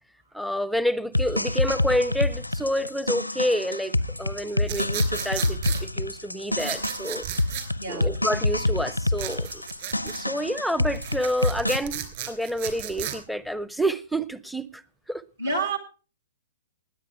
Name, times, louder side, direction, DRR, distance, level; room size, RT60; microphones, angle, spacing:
voice 1, 0.3-7.3 7.9-9.6 10.0-14.8 15.1-15.2, equal, ahead, 0.5 m, -28 dB
sound 1, 1.1-11.8, left 2 dB, 85° left, 0.6 m, -27 dB
sound 2, 4.7-5.8 6.6-7.7 9.2-10.2 10.9-13.2, right 11 dB, 45° right, 3.1 m, -34 dB
voice 2, 7.8-8.1 15.4-15.8, right 3 dB, 70° right, 2.2 m, -28 dB
20.0 x 8.4 x 4.7 m
figure-of-eight pair, 115°, 0 cm